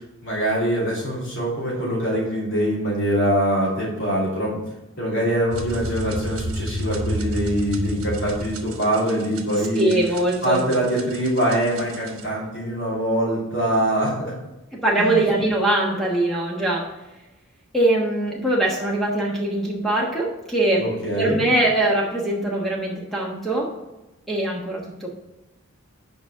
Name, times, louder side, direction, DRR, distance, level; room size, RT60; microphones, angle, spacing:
voice 1, 0.0-4.6 5.0-9.9 10.4-14.3 15.0-15.2 20.8-21.4, right 1 dB, 55° left, -6 dB, 3.1 m, -23 dB
sound 1, 5.5-12.2, right 1 dB, 70° right, 1.2 m, -32 dB
voice 2, 9.7-10.6 14.8-16.9 17.7-20.8 21.1-23.7 24.3-25.1, right 1 dB, ahead, -3 dB, 1.2 m, -22 dB
7.0 x 5.2 x 6.5 m, 0.99 s
head